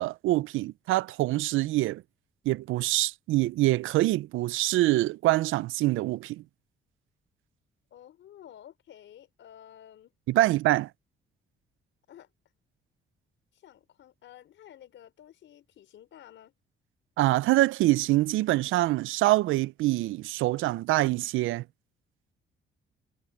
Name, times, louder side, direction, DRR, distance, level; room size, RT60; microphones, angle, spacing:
voice 1, 0.0-2.0 2.5-6.4 10.3-10.9 17.2-21.6, right 17 dB, 85° right, 0.5 m, -25 dB
voice 2, 7.9-10.1 12.1-12.3 13.5-16.5, left 11 dB, 75° left, 5.0 m, -52 dB
cardioid pair, 90°, 20 cm